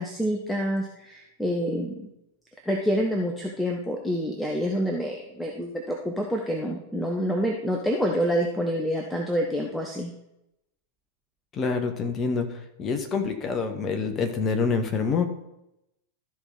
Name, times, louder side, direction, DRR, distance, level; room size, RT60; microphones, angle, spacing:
voice 1, 0.0-2.1 2.7-10.1, equal, 5° left, 1 dB, 1.0 m, -27 dB
voice 2, 11.5-12.5 12.8-15.3, left 5 dB, 25° left, 5 dB, 1.3 m, -26 dB
13.0 x 5.0 x 4.0 m, 0.84 s
figure-of-eight pair, 90°, 0 cm